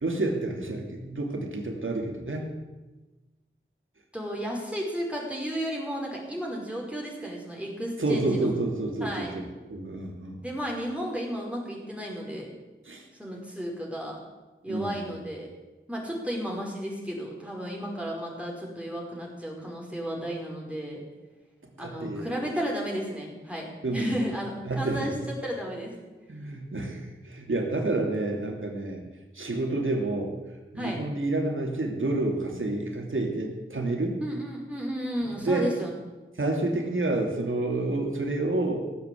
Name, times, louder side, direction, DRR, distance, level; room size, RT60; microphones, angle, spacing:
voice 1, 0.0-2.5 8.0-9.4 9.7-10.4 12.8-13.1 14.7-15.0 21.8-22.4 23.8-24.2 24.6-25.1 26.3-29.0 29.3-30.3 30.7-34.2 35.3-35.7 36.3-38.8, right 2 dB, 70° right, 1 dB, 3.0 m, -29 dB
voice 2, 4.1-8.5 9.0-9.3 10.4-12.5 13.2-14.2 14.6-15.5 15.9-21.0 21.8-25.2 25.4-25.9 30.8-31.0 34.2-35.9, equal, 5° right, -2 dB, 5.1 m, -33 dB
17.0 x 8.1 x 8.6 m, 1.2 s
cardioid pair, 40°, 21 cm